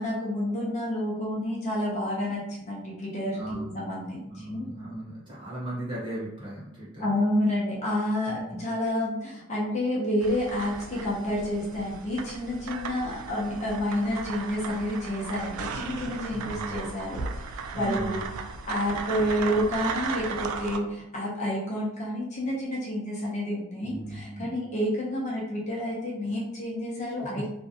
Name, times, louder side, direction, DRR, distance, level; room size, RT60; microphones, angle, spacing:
voice 1, 0.0-4.7 7.0-18.2 18.7-27.5, left 1 dB, 35° left, -5 dB, 0.6 m, -29 dB
voice 2, 3.3-3.8 4.3-7.2 8.3-8.6 16.3-16.7 17.7-18.3 23.8-24.5 27.3-27.5, right 1 dB, 25° right, -8 dB, 1.0 m, -37 dB
sound 1, 10.2-20.8, right 5 dB, 90° right, 0.3 m, -36 dB
2.5 x 2.1 x 2.6 m, 0.83 s
head